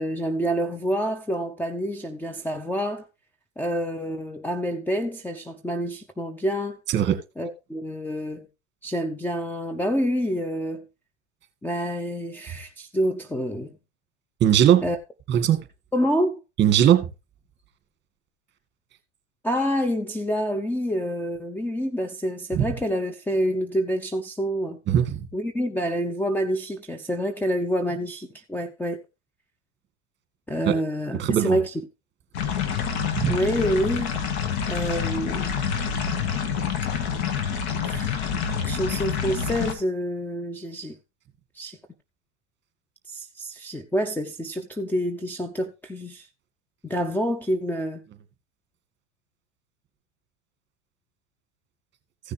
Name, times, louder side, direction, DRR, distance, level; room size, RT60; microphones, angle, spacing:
voice 1, 0.0-3.0 3.6-6.8 7.4-8.5 8.8-10.9 11.6-13.7 14.8-15.0 15.9-16.4 19.4-24.8 25.3-29.0 30.5-31.7 33.3-34.1 34.7-35.6 37.8-38.2 38.6-41.0 41.6-41.8 43.1-46.3 46.8-48.0, equal, 5° left, 0.8 m, -27 dB
voice 2, 6.9-7.2 14.4-14.9 15.3-15.7 16.6-17.1 22.5-22.7 24.9-25.3 30.7-30.8 31.1-31.6 33.2-33.4, right 10 dB, 30° right, 2.1 m, -19 dB
sound 1, 32.3-39.7, left 7 dB, 70° left, 2.0 m, -27 dB
15.5 x 6.4 x 3.3 m
supercardioid pair, 115°, 34 cm